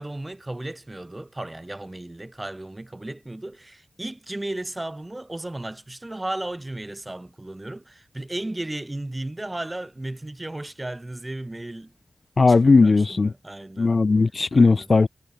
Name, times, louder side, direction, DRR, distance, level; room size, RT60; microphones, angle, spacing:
voice 1, 0.0-11.9 12.5-13.9 14.5-14.9, right 1 dB, 20° right, 2.8 m, -35 dB
voice 2, 12.4-13.3 13.8-15.1, left 3 dB, 55° left, 0.6 m, -17 dB
wide cardioid pair, 65°, 0 cm